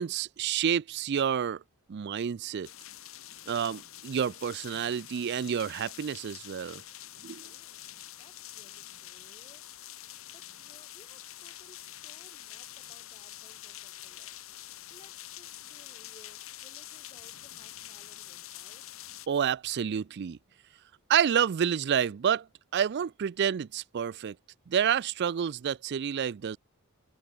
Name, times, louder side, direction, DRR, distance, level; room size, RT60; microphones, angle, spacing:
voice 1, 0.0-1.6 1.9-2.7 3.5-6.8 7.2-7.4 19.3-20.4 21.1-22.5 22.7-24.4 24.7-26.6, right 8 dB, 50° right, 0.4 m, -29 dB
sound 1, 2.6-19.3, left 13 dB, 65° left, 3.0 m, -46 dB
voice 2, 7.4-7.9 8.2-9.7 10.3-18.9, left 2 dB, 25° left, 7.8 m, -60 dB
head